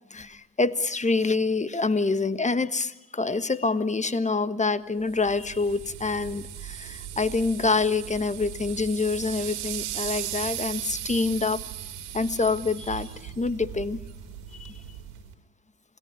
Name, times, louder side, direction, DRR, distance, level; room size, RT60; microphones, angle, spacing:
voice 1, 0.1-11.6 12.1-14.0 14.6-14.8, left 3 dB, 15° left, 13 dB, 1.5 m, -26 dB
sound 1, 5.1-15.3, right 11 dB, 75° right, 4.0 m, -37 dB
28.0 x 17.5 x 9.9 m, 1.0 s
hypercardioid pair, 65°, 41 cm